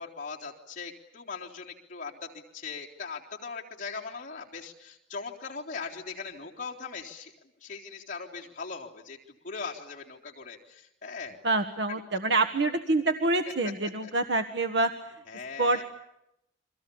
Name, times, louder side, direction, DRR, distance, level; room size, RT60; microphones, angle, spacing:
voice 1, 0.0-7.3 7.6-11.4 11.9-12.0 14.0-14.1 15.3-15.8, left 5 dB, 40° left, -2 dB, 3.7 m, -40 dB
voice 2, 11.4-14.9 15.6-15.8, right 2 dB, 60° right, 6 dB, 1.4 m, -26 dB
30.0 x 24.5 x 7.1 m, 0.82 s
head